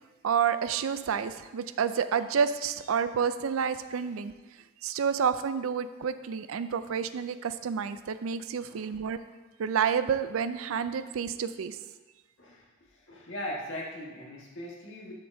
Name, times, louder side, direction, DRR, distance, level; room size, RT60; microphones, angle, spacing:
voice 1, 0.2-4.3 4.8-9.2 9.6-11.8, right 7 dB, 80° right, 12 dB, 0.4 m, -29 dB
voice 2, 12.9-15.1, left 1 dB, 60° left, -3 dB, 1.8 m, -39 dB
11.0 x 6.7 x 2.7 m, 1.2 s
head